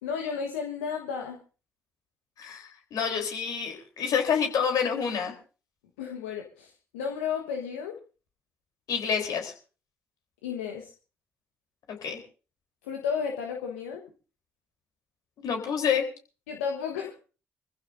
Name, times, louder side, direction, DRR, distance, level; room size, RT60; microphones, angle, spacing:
voice 1, 0.0-1.4 6.0-7.9 10.4-10.9 12.8-14.0 16.5-17.1, left 6 dB, 80° left, 2 dB, 1.3 m, -33 dB
voice 2, 2.4-5.3 8.9-9.5 12.0-12.2 15.4-16.0, left 7 dB, 60° left, 3 dB, 3.7 m, -28 dB
25.0 x 15.0 x 2.7 m, 0.36 s
hypercardioid pair, 45°, 7 cm